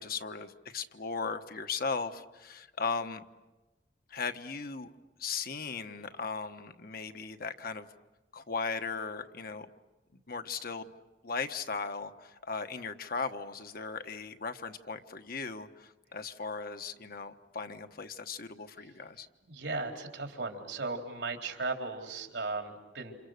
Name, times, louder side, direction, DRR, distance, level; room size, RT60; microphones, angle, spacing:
voice 1, 0.0-3.2 4.1-4.9 5.2-7.9 8.3-9.7 10.3-10.9 11.2-19.3, left 4 dB, 55° left, 8 dB, 1.2 m, -37 dB
voice 2, 19.5-23.1, right 3 dB, 85° right, 3 dB, 3.8 m, -36 dB
28.5 x 28.0 x 6.6 m, 1.1 s
head